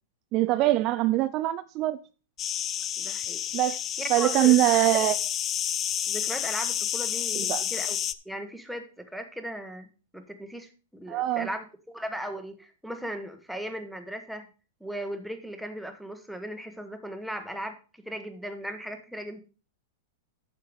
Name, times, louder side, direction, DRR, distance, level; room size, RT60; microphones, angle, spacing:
voice 1, 0.3-2.0 3.5-3.8 4.1-5.1 7.5-7.6 11.1-11.5, right 16 dB, 35° right, 0.4 m, -23 dB
sound 1, 2.4-8.1, left 10 dB, 25° left, 0.4 m, -30 dB
voice 2, 3.0-3.4 4.0-4.6 5.0-5.1 6.1-8.0 8.2-9.9 10.1-14.5 14.8-19.4, equal, ahead, 1.1 m, -37 dB
9.0 x 6.7 x 4.7 m
supercardioid pair, 145°, 0 cm